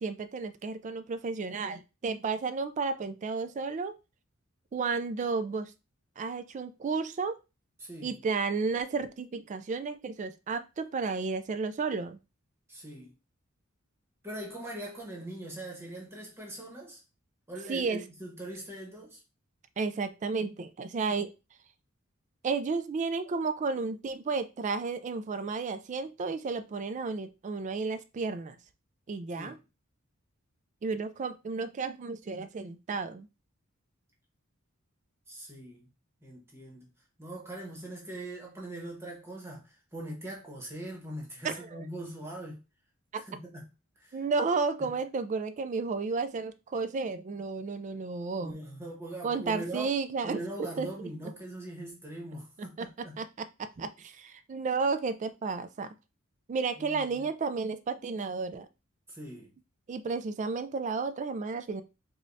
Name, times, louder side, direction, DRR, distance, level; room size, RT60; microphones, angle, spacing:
voice 1, 0.0-3.9 4.7-5.7 6.2-7.4 8.0-12.2 17.7-18.0 19.8-21.3 22.4-28.6 29.1-29.6 30.8-33.3 41.4-41.9 43.1-43.2 44.1-48.6 49.2-50.4 50.8-50.9 52.8-52.9 53.2-55.9 56.5-58.7 59.9-61.8, right 4 dB, 35° right, 0.3 m, -32 dB
voice 2, 7.8-8.2 12.7-13.1 14.2-17.0 17.5-19.2 29.3-29.5 35.3-35.9 36.2-36.9 37.2-42.6 43.1-43.6 44.0-44.2 48.4-50.0 50.2-53.1 56.8-57.3 59.1-59.5, right 1 dB, 10° right, 1.1 m, -41 dB
5.0 x 2.3 x 2.6 m
head